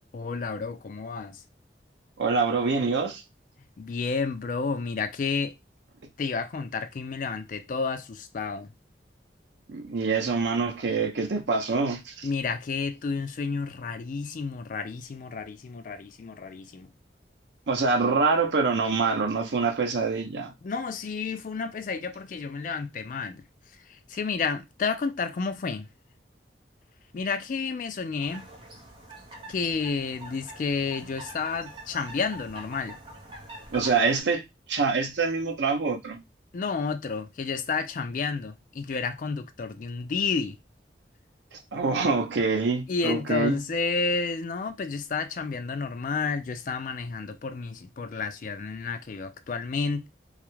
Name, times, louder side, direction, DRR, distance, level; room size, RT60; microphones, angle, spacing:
voice 1, 0.1-1.4 3.8-5.5 6.2-8.7 12.2-16.9 20.6-23.4 23.9-25.9 27.1-28.5 29.5-33.0 36.5-40.6 42.9-50.1, left 4 dB, 45° left, 0.3 m, -31 dB
voice 2, 2.2-3.2 9.7-12.3 17.7-20.5 33.7-34.4 34.7-36.2 41.7-43.6, right 4 dB, 80° right, 0.6 m, -25 dB
sound 1, 28.2-34.2, right 1 dB, 30° right, 0.6 m, -45 dB
2.4 x 2.1 x 2.9 m
head